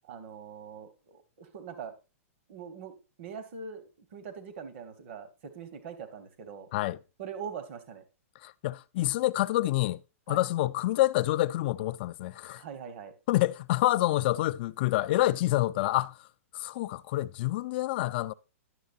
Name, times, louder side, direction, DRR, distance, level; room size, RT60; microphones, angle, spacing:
voice 1, 0.0-2.0 2.5-6.7 7.2-8.0 10.3-10.4 12.6-13.1, right 6 dB, 50° right, 1.3 m, -42 dB
voice 2, 8.4-10.0 10.3-12.6 13.3-16.2 16.5-18.3, left 16 dB, 45° left, 0.4 m, -27 dB
11.0 x 6.6 x 2.6 m
hypercardioid pair, 150°, 8 cm